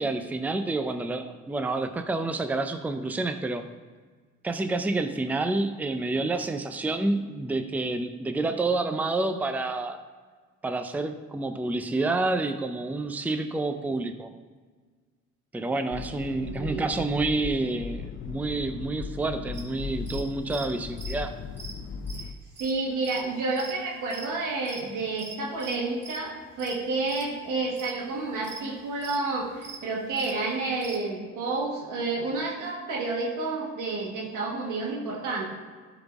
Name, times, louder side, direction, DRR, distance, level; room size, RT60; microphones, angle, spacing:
voice 1, 0.0-3.6 4.4-10.0 10.6-14.3 15.5-21.3, right 2 dB, 5° right, 8 dB, 0.4 m, -28 dB
sound 1, 15.9-22.3, left 5 dB, 45° left, 0.5 m, -37 dB
voice 2, 16.4-16.9 22.6-35.5, right 3 dB, 90° right, -2 dB, 1.5 m, -30 dB
sound 2, 19.5-31.0, right 5 dB, 55° right, 1.8 m, -43 dB
11.5 x 4.1 x 3.5 m, 1.5 s
cardioid pair, 90°, 30 cm